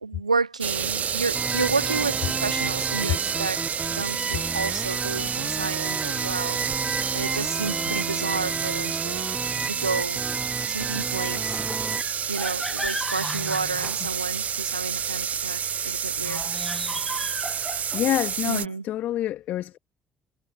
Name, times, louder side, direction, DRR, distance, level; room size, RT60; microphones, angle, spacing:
voice 1, 0.0-3.6 3.9-6.6 7.1-9.3 9.6-10.2 10.7-11.5 12.3-16.4 18.4-18.9, right 4 dB, 90° right, 0.6 m, -31 dB
sound 1, 0.6-18.7, right 8 dB, 45° right, 0.7 m, -29 dB
sound 2, 1.3-12.0, right 3 dB, 20° right, 1.1 m, -32 dB
sound 3, 11.5-14.6 16.2-18.2, left 1 dB, 5° left, 1.1 m, -35 dB
voice 2, 17.9-19.8, left 13 dB, 60° left, 2.0 m, -27 dB
figure-of-eight pair, 45°, 4 cm